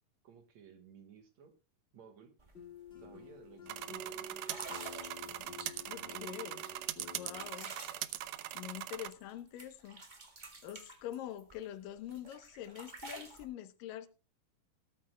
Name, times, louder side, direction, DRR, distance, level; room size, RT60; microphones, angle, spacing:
voice 1, 0.2-1.5 1.9-2.3 3.0-4.7 5.3-5.4, right 7 dB, 60° right, 2.6 m, -57 dB
sound 1, 2.4-2.5 2.9-3.2 3.8-3.9 4.4-6.0 6.6-9.3 9.6-11.7 12.1-13.4, right 2 dB, 40° right, 0.6 m, -50 dB
sound 2, 2.5-7.5, left 2 dB, 30° left, 1.2 m, -50 dB
sound 3, 3.7-9.1, right 14 dB, 75° right, 1.6 m, -41 dB
voice 2, 5.9-6.6 7.0-7.8 8.5-10.0 10.6-14.1, left 11 dB, 90° left, 2.7 m, -45 dB
18.0 x 13.0 x 2.2 m
omnidirectional pair, 3.8 m